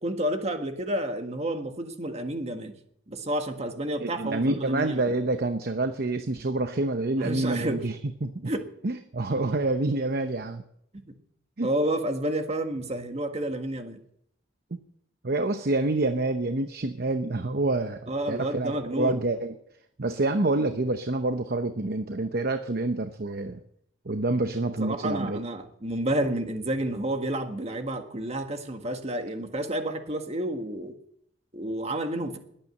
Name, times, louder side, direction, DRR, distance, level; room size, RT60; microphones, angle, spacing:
voice 1, 0.0-2.7 3.1-5.0 7.2-7.9 8.5-8.6 11.6-14.0 18.1-19.2 24.8-30.9 31.5-32.4, right 1 dB, 35° right, 6 dB, 1.7 m, -30 dB
voice 2, 4.0-8.0 8.2-8.5 8.8-10.6 11.6-11.7 15.2-19.5 20.0-23.6 24.1-25.4, right 2 dB, 55° right, 8 dB, 0.9 m, -27 dB
21.0 x 9.1 x 6.6 m, 0.71 s
head